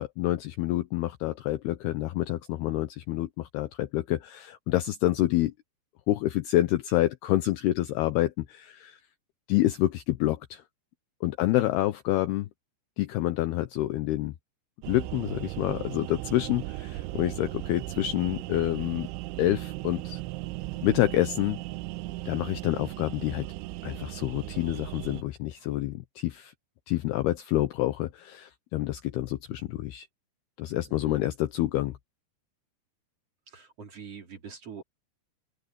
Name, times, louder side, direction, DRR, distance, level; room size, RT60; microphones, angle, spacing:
voice 1, 0.0-5.5 6.1-9.0 9.5-10.6 11.2-12.5 13.0-14.3 14.9-19.1 19.4-20.2 20.8-21.6 22.3-23.5 23.8-26.5 26.9-30.1 30.6-31.9, left 15 dB, 80° left, 2.4 m, -28 dB
voice 2, 11.4-11.7 30.9-31.2 33.5-34.8, right 6 dB, 35° right, 3.9 m, -45 dB
sound 1, 14.8-25.2, right 18 dB, 90° right, 3.1 m, -37 dB
open air
omnidirectional pair, 5.4 m